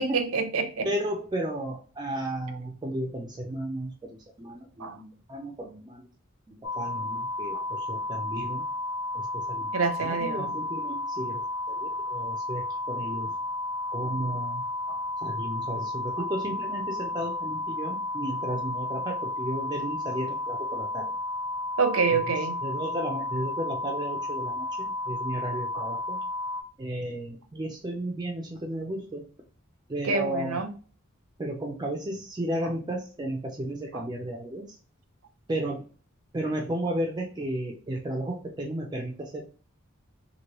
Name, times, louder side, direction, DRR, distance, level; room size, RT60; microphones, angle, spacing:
voice 1, 0.0-0.9 4.8-5.0 7.5-7.6 9.7-10.5 14.9-15.0 16.2-16.3 17.8-17.9 21.8-22.6 25.7-25.9 30.0-30.7 33.9-34.1, right 4 dB, 85° right, 0.6 m, -27 dB
voice 2, 0.8-6.1 6.5-8.6 9.3-9.7 10.0-13.3 13.9-14.6 15.2-21.2 22.1-22.2 22.6-26.2 26.8-29.2 29.9-30.6 31.4-34.8 35.5-35.8 36.3-39.4, right 1 dB, 20° right, 0.4 m, -34 dB
sound 1, 6.6-26.6, left 2 dB, 75° left, 0.9 m, -32 dB
3.0 x 2.6 x 2.9 m
head